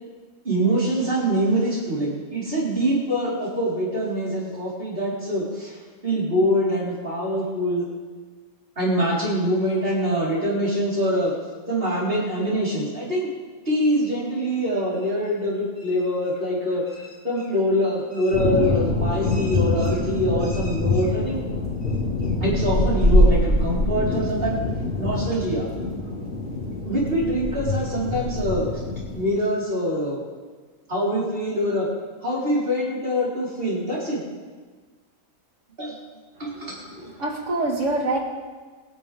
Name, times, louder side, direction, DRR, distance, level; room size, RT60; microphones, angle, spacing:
voice 1, 0.4-7.8 8.8-11.3 11.7-13.3 13.6-21.4 22.4-24.6 25.0-25.7 26.8-28.8 29.1-30.2 30.9-31.9 32.2-34.2 35.8-36.0 36.4-36.8 37.0-37.1, equal, 40° right, -6 dB, 4.6 m, -24 dB
sound 1, 18.3-29.2, left 1 dB, 50° left, 3.2 m, -24 dB
voice 2, 36.4-36.7 37.2-38.2, right 2 dB, 55° right, 0 dB, 2.4 m, -25 dB
23.5 x 9.6 x 3.6 m, 1.4 s
omnidirectional pair, 1.5 m